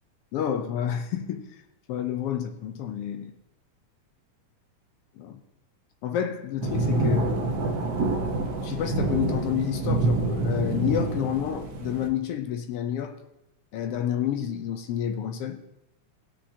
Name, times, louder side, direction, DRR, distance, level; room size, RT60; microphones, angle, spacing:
voice 1, 0.3-1.4 1.9-3.3 5.2-5.4 6.0-7.3 8.6-13.1 13.7-15.6, left 9 dB, 80° left, 1.3 m, -29 dB
sound 1, 6.6-12.1, right 2 dB, 75° right, 0.9 m, -27 dB
16.5 x 9.7 x 2.8 m
omnidirectional pair, 3.5 m